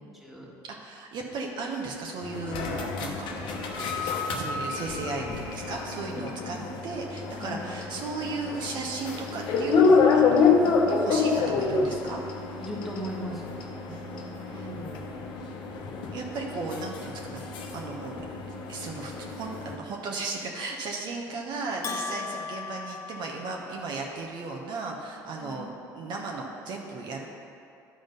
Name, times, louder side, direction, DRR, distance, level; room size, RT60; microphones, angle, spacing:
voice 1, 0.1-0.5 6.1-6.6 7.4-7.6 10.4-10.8 12.6-13.5 14.5-15.1 22.1-22.3 25.4-25.7, equal, ahead, -3 dB, 1.7 m, -39 dB
voice 2, 0.7-3.6 4.0-6.6 6.8-10.4 10.9-12.2 13.9-14.7 16.1-27.3, right 3 dB, 60° right, 0 dB, 1.0 m, -36 dB
sound 1, 2.2-19.8, left 4 dB, 70° left, 1.0 m, -28 dB
Bell, 21.8-24.0, left 5 dB, 35° left, 0.4 m, -37 dB
11.0 x 3.9 x 5.2 m, 2.6 s
supercardioid pair, 85°, 9 cm